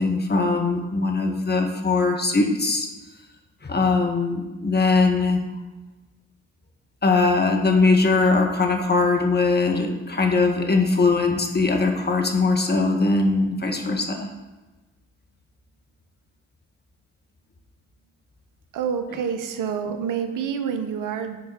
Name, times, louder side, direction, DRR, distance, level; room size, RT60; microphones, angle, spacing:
voice 1, 0.0-2.9 3.6-5.4 7.0-14.3, left 3 dB, 30° left, 3 dB, 1.8 m, -21 dB
voice 2, 18.7-21.4, right 7 dB, 75° right, 7 dB, 0.9 m, -27 dB
9.9 x 4.3 x 5.8 m, 1.1 s
hypercardioid pair, 40°, 32 cm